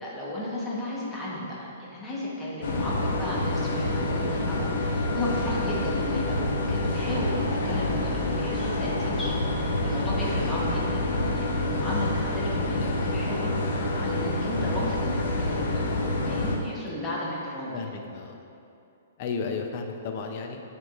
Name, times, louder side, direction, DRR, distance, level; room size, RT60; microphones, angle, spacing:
voice 1, 0.0-17.8, left 1 dB, 10° left, -7 dB, 1.1 m, -34 dB
sound 1, 2.6-16.6, left 2 dB, 75° left, 0.7 m, -27 dB
voice 2, 17.7-18.3 19.2-20.6, left 5 dB, 40° left, 3 dB, 0.5 m, -33 dB
8.7 x 4.6 x 2.5 m, 2.6 s
hypercardioid pair, 160°, 0 cm